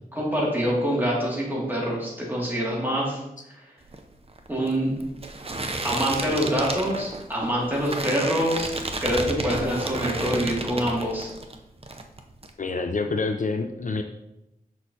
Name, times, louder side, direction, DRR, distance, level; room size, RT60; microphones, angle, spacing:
voice 1, 0.2-3.2 4.5-5.0 5.8-8.7 9.0-11.3, equal, 10° right, -5 dB, 2.2 m, -25 dB
sound 1, 3.8-11.6 11.8-12.5, right 2 dB, 35° right, 0.6 m, -32 dB
voice 2, 12.6-14.0, left 4 dB, 55° left, 6 dB, 0.4 m, -27 dB
6.3 x 5.7 x 2.7 m, 0.89 s
wide cardioid pair, 85°, 16 cm